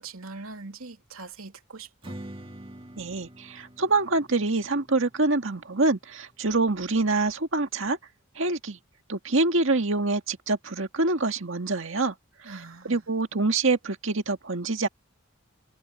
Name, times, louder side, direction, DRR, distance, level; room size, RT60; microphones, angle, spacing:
voice 1, 0.0-2.2 12.4-13.0, right 3 dB, 90° right, 3.0 m, -42 dB
Strum, 2.0-7.3, right 1 dB, 25° right, 2.0 m, -47 dB
voice 2, 3.0-8.0 8.4-8.8 9.1-12.1 12.4-12.5 12.9-14.9, right 3 dB, 65° right, 2.0 m, -25 dB
head